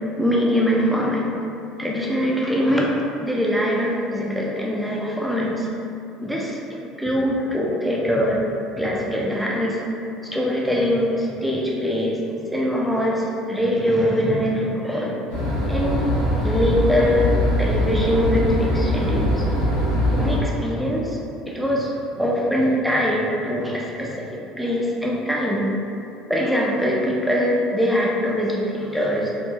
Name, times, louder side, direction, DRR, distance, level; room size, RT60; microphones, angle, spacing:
voice 1, 0.2-1.3 1.8-5.7 6.2-6.6 7.0-8.4 8.8-9.8 10.2-12.2 12.5-16.0 16.4-17.3 17.6-19.4 20.2-21.2 21.5-21.9 22.2-24.3 24.6-25.7 26.3-29.3, equal, ahead, -3 dB, 0.5 m, -22 dB
sound 1, 15.3-20.4, equal, 80° right, 1.1 m, -22 dB
3.7 x 2.0 x 2.8 m, 2.6 s
supercardioid pair, 100°, 0 cm